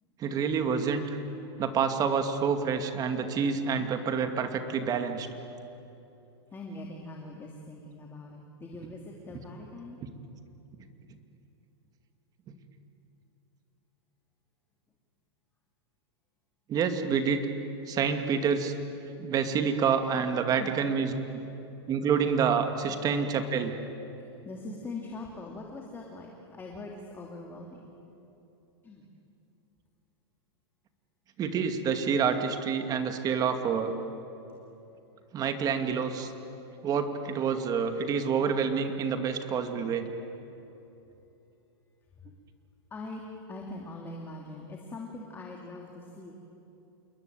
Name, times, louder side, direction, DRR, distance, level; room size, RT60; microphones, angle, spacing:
voice 1, 0.2-1.2 1.6-5.3 12.5-12.6 16.7-17.5 17.9-18.7 19.2-21.1 21.9-23.7 31.4-33.9 35.3-36.3 36.8-40.1, right 6 dB, 25° right, 7 dB, 2.4 m, -28 dB
voice 2, 6.5-10.0 20.6-20.8 24.2-27.9 28.8-29.0 42.9-43.2 43.5-46.3, left 2 dB, 15° left, 0 dB, 2.9 m, -42 dB
28.5 x 21.5 x 9.1 m, 2.9 s
hypercardioid pair, 140°, 14 cm